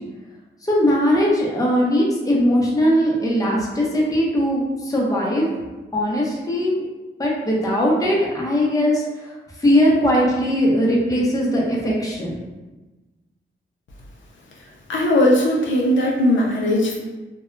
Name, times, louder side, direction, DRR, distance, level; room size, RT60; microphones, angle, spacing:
voice 1, 0.6-5.5 5.9-6.7 7.2-9.3 9.6-12.4, equal, 15° left, -3 dB, 0.6 m, -19 dB
voice 2, 14.9-17.0, left 1 dB, 65° left, -2 dB, 0.5 m, -18 dB
2.7 x 2.2 x 2.4 m, 1.2 s
cardioid pair, 80°, 21 cm